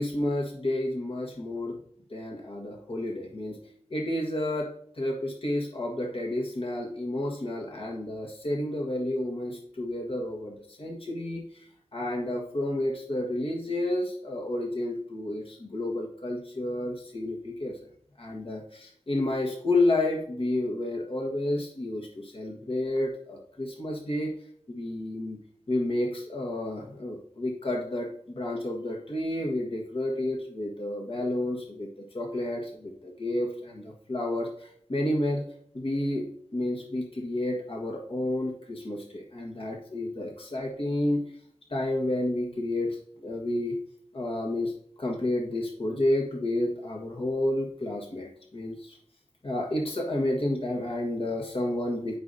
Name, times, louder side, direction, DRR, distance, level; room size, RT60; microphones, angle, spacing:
voice 1, 0.0-1.8 2.1-3.6 3.9-4.7 4.9-11.6 11.9-17.8 18.2-24.3 24.7-25.4 25.7-28.1 28.3-35.4 35.7-36.3 36.5-41.2 41.7-43.8 44.1-44.7 45.0-49.0 49.4-52.2, left 1 dB, 55° left, 0 dB, 1.5 m, -30 dB
12.0 x 5.2 x 2.7 m, 0.64 s
wide cardioid pair, 55°, 11 cm